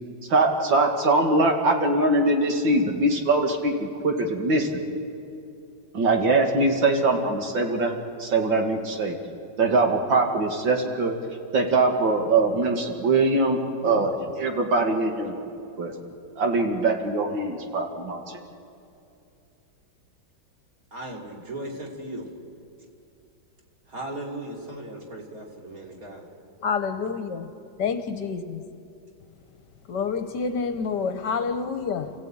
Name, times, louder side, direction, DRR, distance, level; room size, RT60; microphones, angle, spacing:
voice 1, 0.3-4.8 5.9-7.9 8.2-9.2 9.6-11.1 11.5-15.3 15.8-15.9 16.4-18.2, right 2 dB, 70° right, 2.6 m, -22 dB
voice 2, 20.9-22.3 23.9-26.3, right 1 dB, 45° right, 3.3 m, -37 dB
voice 3, 26.6-27.5 27.8-28.6 29.9-32.1, left 5 dB, 65° left, 1.5 m, -28 dB
29.0 x 15.5 x 8.8 m
omnidirectional pair, 2.1 m